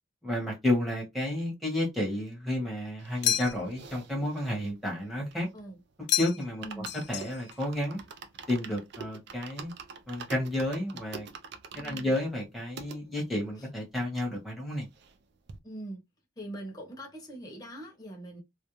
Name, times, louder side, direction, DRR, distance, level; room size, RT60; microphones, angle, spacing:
voice 1, 0.2-5.5 6.2-8.0 8.5-9.7 10.1-11.3 11.7-14.9, left 1 dB, ahead, 1.0 m, -31 dB
sound 1, 3.0-5.8 6.1-6.2 6.4-13.0 13.6-13.7 13.8-13.9 14.2-15.2 15.5-15.6, right 5 dB, 55° right, 0.4 m, -46 dB
sound 2, 3.2-3.9 6.1-6.6 6.9-7.6, left 13 dB, 55° left, 0.3 m, -30 dB
voice 2, 6.6-6.9 11.8-12.1 15.6-16.0 16.4-18.4, right 1 dB, 20° left, 0.8 m, -42 dB
2.4 x 2.1 x 2.9 m
head